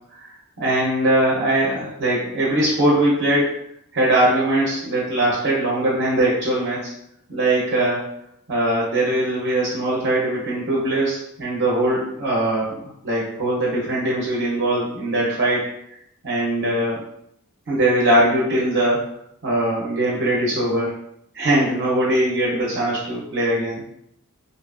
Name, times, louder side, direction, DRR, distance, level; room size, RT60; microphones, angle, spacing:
voice 1, 0.6-3.5 3.9-6.9 7.3-8.0 8.5-12.7 13.0-15.6 16.2-17.0 17.7-19.0 19.4-20.9 21.3-23.8, right 1 dB, 50° right, -5 dB, 0.7 m, -21 dB
2.6 x 2.3 x 2.4 m, 0.75 s
head